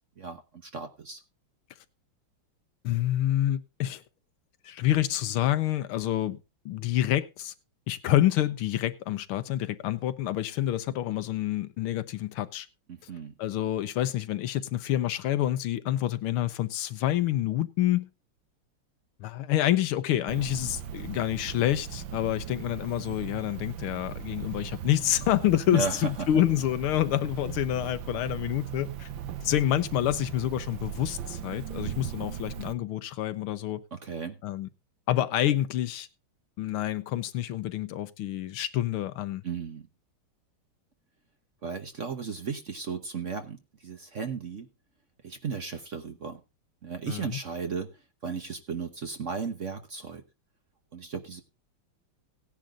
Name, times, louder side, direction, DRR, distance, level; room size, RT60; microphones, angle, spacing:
voice 1, 0.2-1.2 12.9-13.3 25.7-26.4 33.9-34.4 39.4-39.9 41.6-44.7 45.2-46.4 46.8-47.9 48.2-50.2 50.9-51.4, right 5 dB, 45° right, 1.1 m, -35 dB
voice 2, 2.8-4.0 4.6-7.5 7.9-12.7 13.4-18.1 19.2-29.1 29.4-33.8 34.4-34.7 35.1-36.1 36.6-39.4 47.1-47.4, left 13 dB, 85° left, 1.7 m, -28 dB
Cricket, 20.3-32.7, right 9 dB, 70° right, 1.5 m, -38 dB
18.0 x 10.5 x 2.4 m
omnidirectional pair, 2.3 m